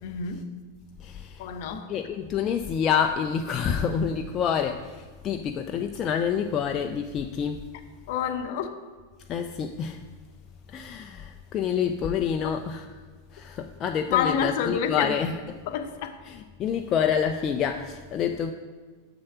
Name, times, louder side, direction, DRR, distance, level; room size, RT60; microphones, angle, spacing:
voice 1, 0.0-0.5 1.4-1.9 8.1-8.7 14.1-15.1 15.7-16.2, left 7 dB, 50° left, 8 dB, 0.7 m, -28 dB
voice 2, 1.0-1.5 1.9-7.6 9.3-10.0 10.7-12.9 13.3-15.6 16.3-18.5, left 7 dB, 30° left, 5 dB, 0.4 m, -28 dB
7.0 x 6.4 x 5.5 m, 1.4 s
figure-of-eight pair, 90°, 0 cm